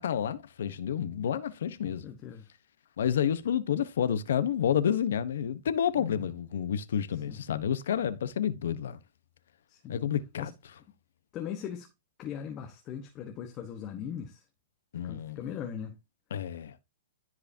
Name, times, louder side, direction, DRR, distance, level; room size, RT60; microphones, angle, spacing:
voice 1, 0.0-2.1 3.0-9.0 9.9-10.5 14.9-15.4 16.3-16.7, left 9 dB, 70° left, 1.1 m, -29 dB
voice 2, 1.8-2.5 6.0-6.3 7.1-7.4 9.7-10.1 10.4-10.5 11.3-11.9 12.2-14.4 15.0-16.0, left 8 dB, 30° left, 1.3 m, -40 dB
14.0 x 4.9 x 2.9 m
hypercardioid pair, 150°, 0 cm